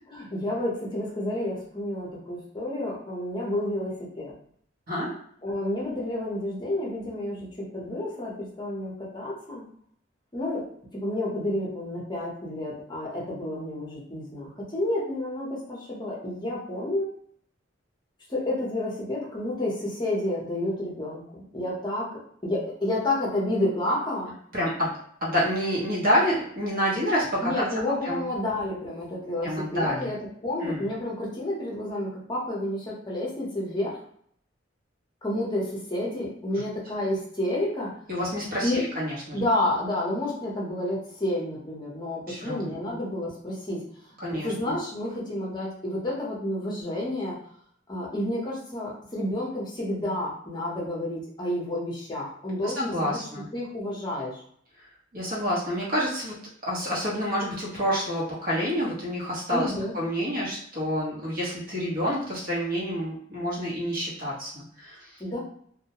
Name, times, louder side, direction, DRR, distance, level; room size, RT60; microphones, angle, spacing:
voice 1, 0.1-4.3 5.4-7.5 7.7-8.3 8.6-9.6 10.3-10.6 10.9-17.1 18.3-22.1 22.4-24.3 27.4-30.2 30.4-34.0 35.2-37.9 38.6-38.8 39.3-47.4 47.9-53.2 53.5-54.4 59.5-59.9 65.2-65.4, left 1 dB, 25° left, -4 dB, 0.7 m, -30 dB
voice 2, 24.5-24.9 25.2-27.6 28.0-28.2 29.4-30.1 30.6-30.9 36.5-36.6 38.1-39.4 42.3-43.0 44.2-44.8 52.6-53.5 55.1-56.3 56.6-65.2, equal, 50° right, -5 dB, 0.9 m, -28 dB
2.2 x 2.1 x 2.8 m, 0.63 s
head